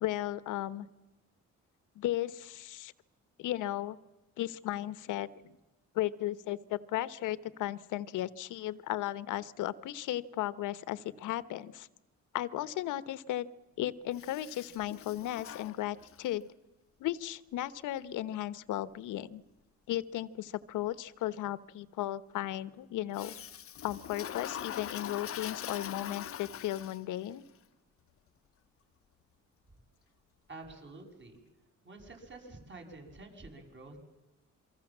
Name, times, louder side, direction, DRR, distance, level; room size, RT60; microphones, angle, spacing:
voice 1, 0.0-0.9 1.9-2.9 3.4-4.0 4.4-5.5 5.9-11.9 12.3-13.5 13.8-16.5 17.0-19.4 19.9-23.3 23.8-27.4, left 14 dB, 90° left, 15 dB, 1.1 m, -35 dB
Toilet flush, 14.1-16.4 23.1-27.3, left 10 dB, 50° left, 0.8 m, -43 dB
voice 2, 30.5-31.4 31.8-34.0, right 2 dB, 40° right, 4 dB, 7.1 m, -49 dB
27.5 x 24.0 x 7.4 m, 1.0 s
cardioid pair, 90°, 30 cm